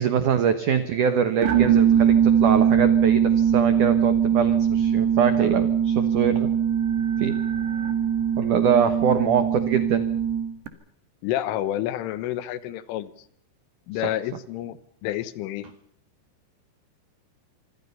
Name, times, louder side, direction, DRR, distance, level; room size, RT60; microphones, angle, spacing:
voice 1, 0.0-6.5 7.2-7.4 8.4-10.1 13.9-14.0, right 7 dB, 80° right, 10 dB, 1.8 m, -24 dB
sound 1, 1.4-10.7, right 8 dB, 65° right, 3.7 m, -21 dB
voice 2, 11.2-13.1 13.9-14.8 15.0-15.7, left 13 dB, 85° left, 14 dB, 3.8 m, -29 dB
26.0 x 25.0 x 5.6 m, 0.64 s
omnidirectional pair, 5.6 m